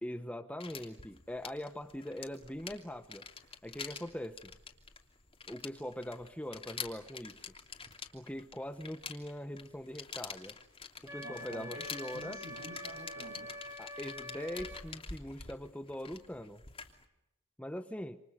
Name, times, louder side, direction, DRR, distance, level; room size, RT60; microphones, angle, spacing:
voice 1, 0.0-3.3 3.6-4.5 5.5-7.4 8.1-10.5 11.0-12.4 13.8-16.6 17.6-18.2, left 1 dB, 5° left, 9 dB, 1.0 m, -42 dB
sound 1, 0.6-17.0, left 5 dB, 25° left, 2.9 m, -47 dB
Wind instrument woodwind instrument, 11.1-14.9, left 1 dB, 15° right, 2.8 m, -45 dB
voice 2, 11.2-13.5, right 1 dB, 70° right, 7 dB, 6.9 m, -48 dB
28.5 x 28.0 x 6.6 m, 0.90 s
head